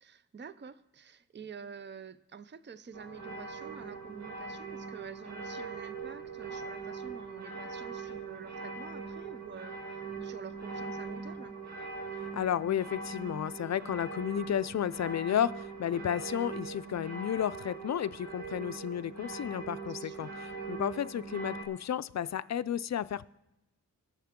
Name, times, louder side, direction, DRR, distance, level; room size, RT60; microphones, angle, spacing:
voice 1, 0.0-11.6 20.0-20.7, right 6 dB, 30° right, 15 dB, 0.6 m, -48 dB
sound 1, 2.9-21.7, right 4 dB, 50° right, 1.7 m, -41 dB
voice 2, 12.3-23.3, left 10 dB, 50° left, 16 dB, 0.5 m, -32 dB
20.0 x 7.1 x 3.7 m, 0.93 s
cardioid pair, 60°, 35 cm